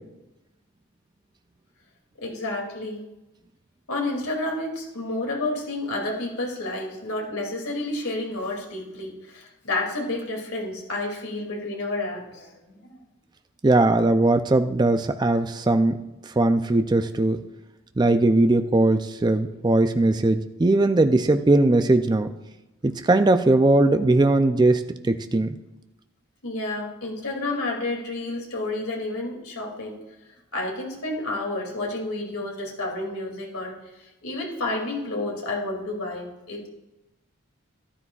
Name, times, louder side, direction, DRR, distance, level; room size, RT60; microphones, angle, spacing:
voice 1, 2.2-3.0 3.9-13.0 26.4-30.0 30.5-36.7, left 2 dB, 90° left, 0 dB, 2.6 m, -30 dB
voice 2, 13.6-17.4 18.0-22.3 22.8-25.6, right 2 dB, 20° right, 8 dB, 0.3 m, -20 dB
13.5 x 12.0 x 2.4 m, 0.99 s
head